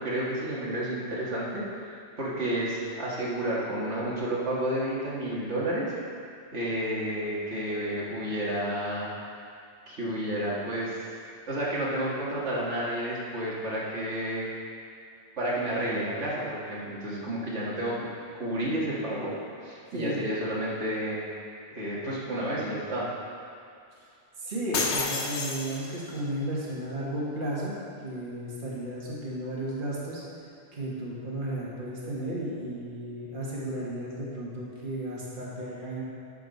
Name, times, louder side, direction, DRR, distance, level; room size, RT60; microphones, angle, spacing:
voice 1, 0.0-5.9 6.5-9.4 9.9-11.0 11.5-14.4 15.4-18.1 18.3-19.3 19.6-21.2 21.7-23.1, right 1 dB, 85° right, -6 dB, 2.0 m, -31 dB
voice 2, 19.9-20.2 24.4-27.8 28.0-30.2 30.7-36.0, right 1 dB, 50° right, -6 dB, 1.8 m, -34 dB
sound 1, 24.7-26.2, left 4 dB, 80° left, 1.1 m, -30 dB
11.5 x 5.9 x 4.1 m, 2.4 s
omnidirectional pair, 1.2 m